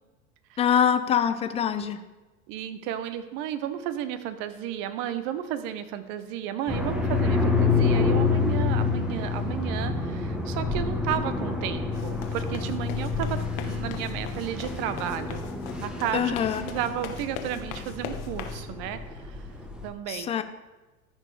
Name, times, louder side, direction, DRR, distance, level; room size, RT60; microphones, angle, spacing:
voice 1, 0.6-2.0 16.1-16.6 20.1-20.4, left 8 dB, 15° left, 11 dB, 0.3 m, -24 dB
voice 2, 2.5-15.4 15.8-19.5 19.8-20.3, right 10 dB, 50° right, 11 dB, 1.0 m, -33 dB
sound 1, 6.7-19.9, left 4 dB, ahead, 1.0 m, -28 dB
sound 2, 11.9-18.6, left 9 dB, 65° left, 1.2 m, -41 dB
13.5 x 4.7 x 4.8 m, 1.1 s
hypercardioid pair, 95°, 44 cm